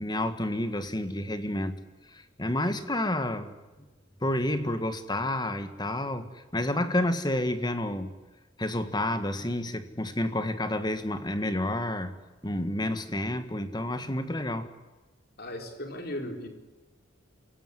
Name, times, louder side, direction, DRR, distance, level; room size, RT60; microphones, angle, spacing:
voice 1, 0.0-1.7 2.1-3.5 4.2-8.1 8.6-12.1 12.4-14.7, left 1 dB, 20° left, 10 dB, 1.8 m, -30 dB
voice 2, 15.4-16.5, left 1 dB, 50° left, 5 dB, 4.3 m, -36 dB
27.0 x 17.0 x 9.8 m, 1.2 s
head